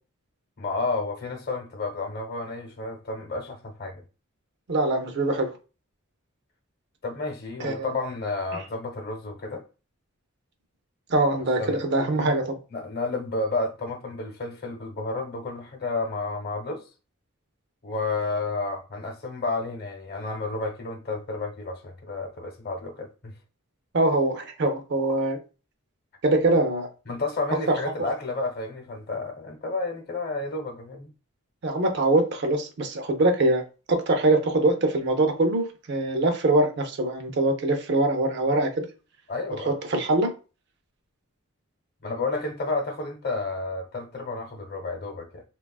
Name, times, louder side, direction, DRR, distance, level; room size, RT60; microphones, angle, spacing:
voice 1, 0.6-4.0 7.0-9.6 11.6-11.8 12.7-16.8 17.8-23.3 27.1-31.1 39.3-39.7 42.0-45.4, left 3 dB, 50° left, 0.8 m, -31 dB
voice 2, 4.7-5.5 7.6-7.9 8.5-8.6 11.1-12.6 23.9-25.4 26.2-26.9 27.7-27.8 31.6-33.6 33.9-38.9 39.7-40.3, right 2 dB, 55° right, 0.5 m, -23 dB
3.3 x 2.3 x 2.2 m
head